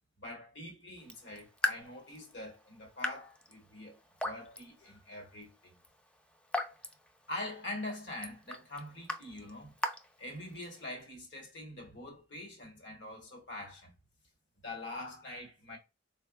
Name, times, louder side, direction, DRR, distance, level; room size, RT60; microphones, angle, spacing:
voice 1, 0.2-5.7 7.3-9.7 10.2-13.9 14.6-15.8, left 2 dB, 75° left, 1.3 m, -44 dB
Raindrop / Drip, 1.0-10.9, left 1 dB, 5° left, 0.3 m, -41 dB
3.8 x 2.4 x 2.4 m
head